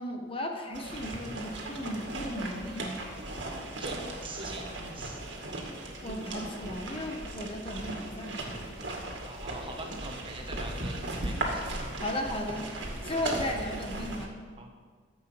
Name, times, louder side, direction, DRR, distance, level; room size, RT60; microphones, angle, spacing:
voice 1, 0.0-3.1 6.0-8.7 12.0-12.7 13.0-14.4, left 1 dB, 30° left, 3 dB, 1.2 m, -35 dB
sound 1, 0.7-14.3, right 2 dB, 75° right, 2.1 m, -37 dB
voice 2, 3.8-4.7 4.9-5.3 9.2-12.0 12.7-13.2 14.6-14.8, right 2 dB, 30° right, 2 dB, 1.4 m, -44 dB
13.5 x 7.9 x 5.8 m, 1.6 s
head